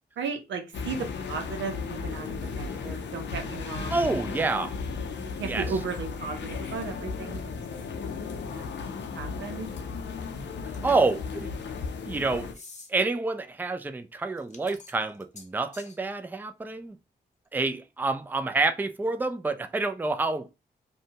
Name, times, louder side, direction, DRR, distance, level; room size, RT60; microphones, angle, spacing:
voice 1, 0.2-4.0 5.4-7.6 8.0-9.7, right 5 dB, 85° right, 0.6 m, -36 dB
sound 1, 0.7-12.5, left 5 dB, 70° left, 0.5 m, -35 dB
voice 2, 3.9-4.7 5.4-5.7 10.6-11.5 12.0-12.5 12.9-17.0 17.5-20.5, right 3 dB, 10° right, 0.4 m, -28 dB
sound 2, 10.7-11.1 12.5-12.9 14.4-16.0, left 4 dB, 40° left, 0.7 m, -48 dB
2.6 x 2.2 x 2.8 m
cardioid pair, 45°, 19 cm